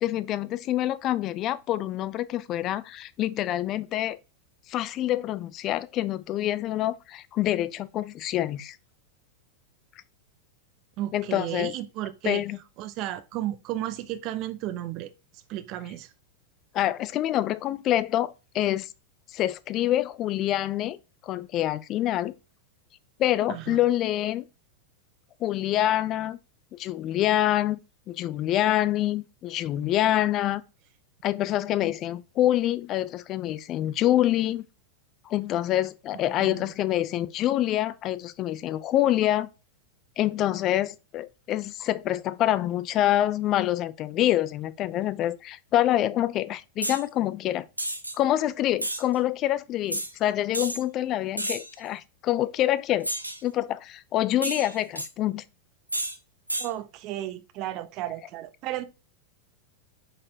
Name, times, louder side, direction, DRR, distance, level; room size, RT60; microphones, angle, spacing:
voice 1, 0.0-4.2 4.7-8.8 11.1-11.7 12.2-12.6 16.7-18.9 19.3-21.0 21.2-22.3 23.2-24.4 25.4-26.4 26.7-27.8 28.1-30.6 31.2-34.6 35.3-39.5 40.2-47.7 48.2-53.1 53.4-55.4, left 13 dB, 35° left, 0.4 m, -26 dB
voice 2, 11.0-12.5 12.8-15.1 15.5-16.1 23.5-23.8 36.3-36.7 56.6-58.8, right 13 dB, 40° right, 0.5 m, -33 dB
sound 1, 46.8-47.0 47.8-48.2 48.8-49.0 49.9-50.1 50.5-50.8 51.4-51.7 53.0-53.4 54.4-55.1 55.9-56.2 56.5-56.7, right 1 dB, 85° right, 0.6 m, -31 dB
5.0 x 4.2 x 2.4 m
figure-of-eight pair, 90°, 0 cm